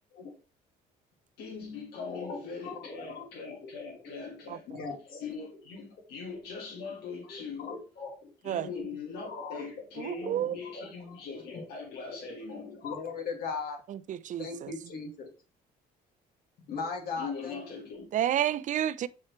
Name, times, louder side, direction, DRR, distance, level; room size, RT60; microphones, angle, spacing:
voice 1, 1.4-4.7 5.2-7.7 8.4-12.8 17.2-18.1, left 5 dB, 80° left, 2.0 m, -41 dB
voice 2, 1.9-3.3 3.5-3.7 4.0-4.1 4.7-5.6 6.3-6.4 6.7-6.9 7.3-8.3 9.3-9.7 10.2-10.4 10.6-11.7 12.2-12.3 12.7-13.8 14.4-15.3 16.7-17.8, left 4 dB, 65° left, 2.2 m, -39 dB
voice 3, 4.5-4.8 8.5-8.7 10.0-10.6 13.9-14.7 18.1-19.1, right 11 dB, 50° right, 0.5 m, -30 dB
7.2 x 4.6 x 3.1 m
cardioid pair, 110°, 17 cm